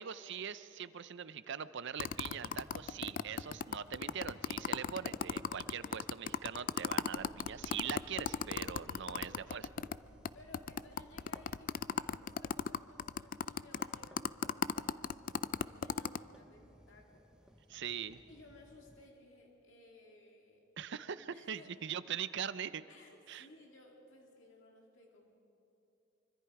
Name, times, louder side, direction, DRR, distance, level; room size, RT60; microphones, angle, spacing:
voice 1, 0.0-9.6 17.7-18.2 20.8-22.8 23.3-23.5, right 8 dB, 65° right, 14 dB, 0.6 m, -42 dB
sound 1, 2.0-10.0 10.2-10.3 10.5-16.2, left 7 dB, 45° left, 0.4 m, -36 dB
sound 2, 2.0-19.1, equal, 5° right, 0.8 m, -61 dB
sound 3, 7.2-13.3, right 2 dB, 85° right, 1.2 m, -62 dB
voice 2, 9.0-9.5 10.3-17.6 18.3-20.6 21.3-21.7 22.9-25.4, left 2 dB, 65° left, 1 dB, 2.4 m, -59 dB
25.0 x 25.0 x 4.8 m, 2.8 s
head